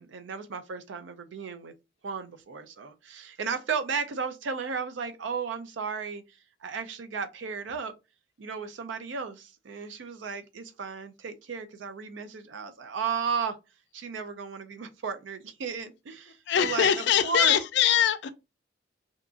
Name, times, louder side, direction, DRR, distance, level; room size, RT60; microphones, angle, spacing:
voice 1, 0.0-1.7 2.0-6.2 6.6-7.9 8.4-13.6 13.9-17.6, right 5 dB, 75° right, 0.4 m, -34 dB
voice 2, 16.5-18.3, left 9 dB, 65° left, 0.3 m, -23 dB
2.8 x 2.4 x 2.4 m
head